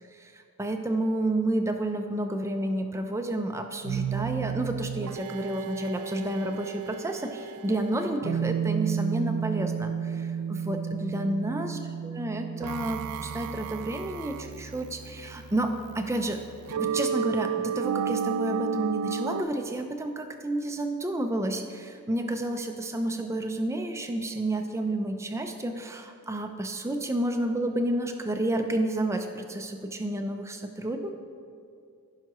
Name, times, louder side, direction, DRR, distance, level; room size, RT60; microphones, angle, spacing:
voice 1, 0.2-16.4 16.8-31.1, right 1 dB, 15° right, 5 dB, 0.5 m, -30 dB
sound 1, 3.8-19.4, right 7 dB, 75° right, 0.3 m, -32 dB
15.5 x 5.7 x 3.0 m, 2.4 s
head